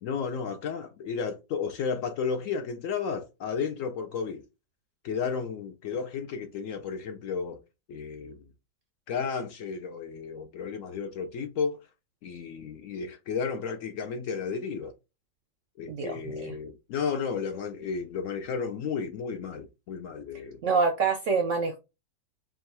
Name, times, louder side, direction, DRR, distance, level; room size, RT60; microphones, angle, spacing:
voice 1, 0.0-4.4 5.0-7.6 7.9-8.5 9.1-11.8 12.2-14.9 15.8-20.6, left 6 dB, 75° left, 0.7 m, -33 dB
voice 2, 15.9-16.5 20.6-21.8, right 4 dB, 70° right, 0.7 m, -26 dB
3.6 x 2.2 x 4.1 m
omnidirectional pair, 1.9 m